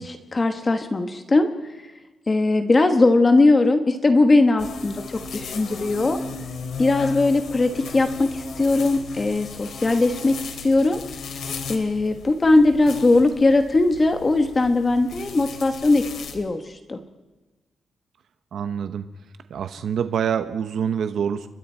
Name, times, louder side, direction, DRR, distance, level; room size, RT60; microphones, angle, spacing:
voice 1, 0.0-1.5 2.3-6.2 6.8-11.0 11.7-16.0 16.3-17.0, left 2 dB, 25° left, 7 dB, 1.1 m, -19 dB
sound 1, 4.6-16.3, left 4 dB, 70° left, 2.8 m, -36 dB
voice 2, 18.5-19.1 19.5-21.5, right 8 dB, 70° right, 9 dB, 0.9 m, -26 dB
30.0 x 23.5 x 4.5 m, 1.2 s
wide cardioid pair, 165°, 0 cm